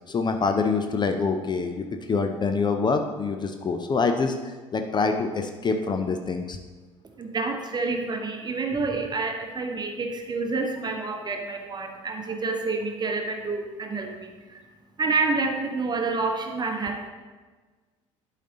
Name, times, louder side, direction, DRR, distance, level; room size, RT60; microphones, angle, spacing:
voice 1, 0.1-6.6, left 4 dB, 25° left, 6 dB, 0.6 m, -26 dB
voice 2, 7.2-14.6 15.0-17.1, right 3 dB, 25° right, 4 dB, 1.0 m, -28 dB
11.5 x 4.2 x 4.0 m, 1.4 s
figure-of-eight pair, 60°, 17 cm